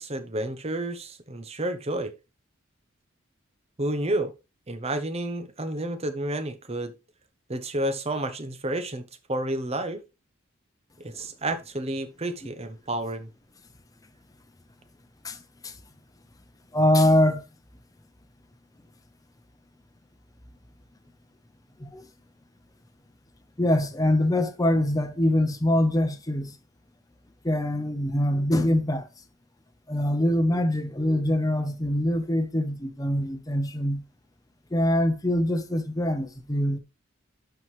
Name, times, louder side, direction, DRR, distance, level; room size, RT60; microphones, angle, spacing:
voice 1, 0.0-2.1 3.8-4.3 4.7-6.9 7.5-9.0 9.3-10.0 11.0-13.3, right 1 dB, 30° right, 0.9 m, -30 dB
voice 2, 16.7-17.4 21.8-22.0 23.6-26.5 27.4-29.1 29.9-34.0 34.7-36.8, left 1 dB, 15° left, 0.8 m, -24 dB
11.5 x 4.6 x 3.2 m
head